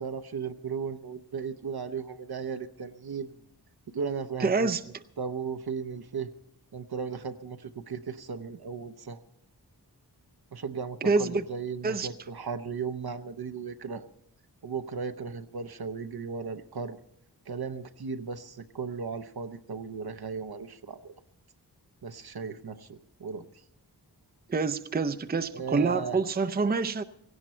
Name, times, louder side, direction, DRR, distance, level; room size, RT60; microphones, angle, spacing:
voice 1, 0.0-3.4 3.9-4.7 5.2-6.3 6.7-9.2 10.5-14.1 14.6-17.0 17.5-21.1 22.0-23.5 25.5-26.2, right 5 dB, 70° right, 9 dB, 0.9 m, -36 dB
voice 2, 4.4-4.8 11.0-11.4 11.8-12.1 24.5-27.0, right 4 dB, 25° right, 11 dB, 0.5 m, -26 dB
17.0 x 16.5 x 4.4 m, 0.80 s
wide cardioid pair, 80°, 39 cm